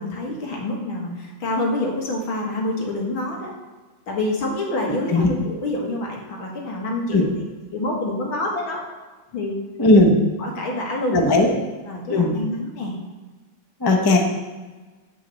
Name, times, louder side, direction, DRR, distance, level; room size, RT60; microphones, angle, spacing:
voice 1, 0.0-3.5 4.1-7.3 7.7-8.8 9.3-9.6 10.4-11.5 11.9-12.9, left 1 dB, 80° left, -1 dB, 2.5 m, -27 dB
voice 2, 9.8-10.1 11.1-11.5 12.1-12.3 13.8-14.2, left 2 dB, 20° left, 2 dB, 0.6 m, -16 dB
9.2 x 4.7 x 7.7 m, 1.3 s
omnidirectional pair, 2.2 m